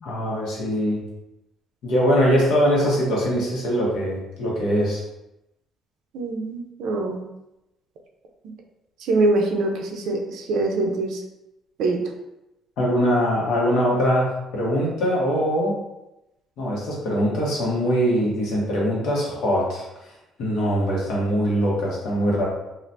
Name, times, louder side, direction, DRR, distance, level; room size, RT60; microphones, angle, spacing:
voice 1, 0.0-1.0 1.8-5.0 12.8-15.7 16.6-19.9 20.4-22.5, equal, 65° left, -4 dB, 1.0 m, -22 dB
voice 2, 6.1-7.2 9.1-11.2 11.8-12.0, right 2 dB, 70° right, 2 dB, 0.5 m, -23 dB
3.2 x 2.4 x 2.6 m, 0.92 s
cardioid pair, 170°, 0 cm